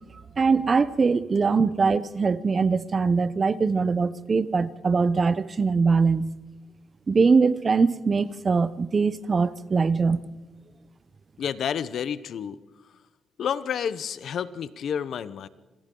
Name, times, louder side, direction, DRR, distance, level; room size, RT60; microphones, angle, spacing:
voice 1, 0.4-6.3 7.1-10.2, right 4 dB, 35° right, 0.7 m, -22 dB
voice 2, 11.4-12.6 13.4-15.5, left 8 dB, 65° left, 0.8 m, -30 dB
27.0 x 26.5 x 3.9 m
cardioid pair, 100°, 0 cm